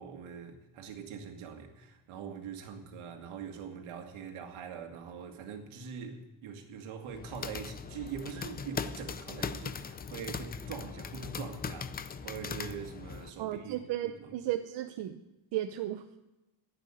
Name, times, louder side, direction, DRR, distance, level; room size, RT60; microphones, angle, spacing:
voice 1, 0.0-13.8 14.2-14.3, right 6 dB, 75° right, 2.1 m, -43 dB
sound 1, 7.1-13.3, left 6 dB, 20° left, 0.4 m, -40 dB
voice 2, 13.4-15.2 15.5-16.1, right 13 dB, 60° right, 0.8 m, -34 dB
11.0 x 8.9 x 9.8 m
cardioid pair, 145°, 49 cm